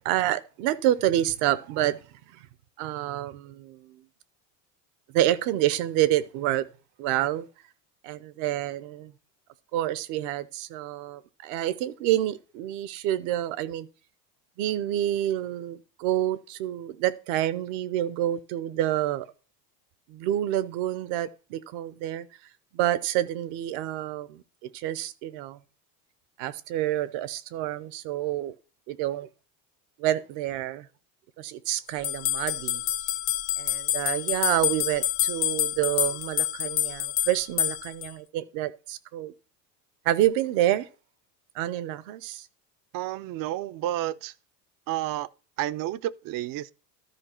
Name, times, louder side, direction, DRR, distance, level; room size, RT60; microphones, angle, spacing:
voice 1, 0.0-2.0 2.8-4.0 5.1-6.7 7.0-7.5 8.0-9.1 9.7-13.9 14.6-19.3 20.1-22.3 22.7-25.6 26.4-28.5 28.9-29.3 30.0-30.9 31.4-32.8 33.6-39.3 40.0-40.9 41.5-42.5, right 13 dB, 65° right, 0.9 m, -28 dB
sound 1, 32.0-38.1, left 13 dB, 50° left, 0.8 m, -27 dB
voice 2, 42.9-44.3 44.9-45.3 45.6-46.7, right 14 dB, 45° right, 0.6 m, -30 dB
13.0 x 4.7 x 4.4 m
hypercardioid pair, 90°, 49 cm